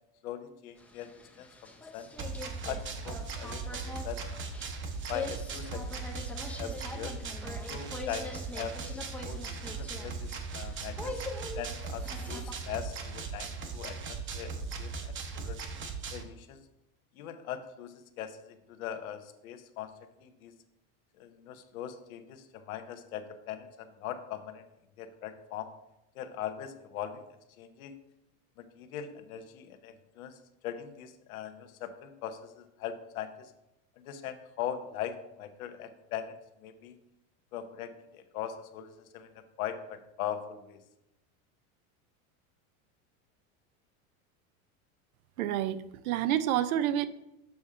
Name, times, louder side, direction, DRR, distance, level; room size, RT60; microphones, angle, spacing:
voice 1, 0.2-1.1 1.4-1.5 1.9-2.1 2.6-4.2 5.1-6.1 6.6-7.2 7.7-11.2 11.5-15.6 16.1-16.6 17.2-20.5 21.2-24.6 25.0-25.7 26.1-27.2 27.6-27.9 28.6-30.4 30.6-33.5 34.0-36.3 36.6-36.9 37.5-40.8, left 9 dB, 85° left, 8 dB, 0.9 m, -41 dB
sound 1, 0.8-12.5, left 3 dB, 5° left, 0.5 m, -44 dB
sound 2, 2.2-16.2, right 4 dB, 30° right, 0.8 m, -38 dB
voice 2, 45.4-47.0, right 11 dB, 90° right, 14 dB, 0.6 m, -28 dB
6.8 x 3.6 x 5.5 m, 0.90 s
supercardioid pair, 125°, 41 cm